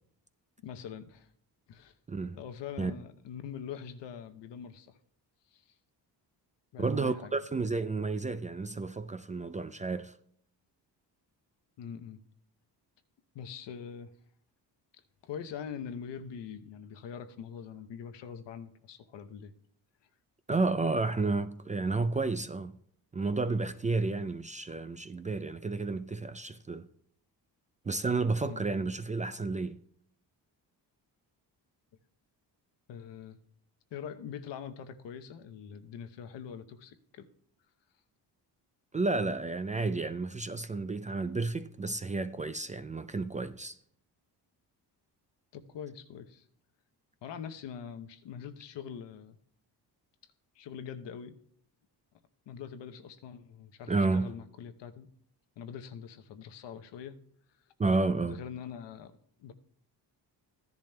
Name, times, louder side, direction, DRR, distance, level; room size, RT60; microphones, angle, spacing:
voice 1, 0.6-1.3 1.7-1.9 2.3-5.0 5.5-5.6 6.7-7.4 11.8-12.2 13.3-14.1 15.2-19.5 28.5-28.6 32.9-33.4 33.9-37.3 45.5-46.4 47.2-49.4 50.2-51.3 52.5-55.1 55.6-57.2 58.2-59.5, left 7 dB, 80° left, 0.8 m, -43 dB
voice 2, 6.8-10.1 20.5-22.7 23.1-26.9 27.8-29.8 38.9-43.8 53.9-54.3 57.8-58.4, right 3 dB, 20° right, 0.3 m, -31 dB
14.5 x 10.5 x 2.2 m
cardioid pair, 80°, 43 cm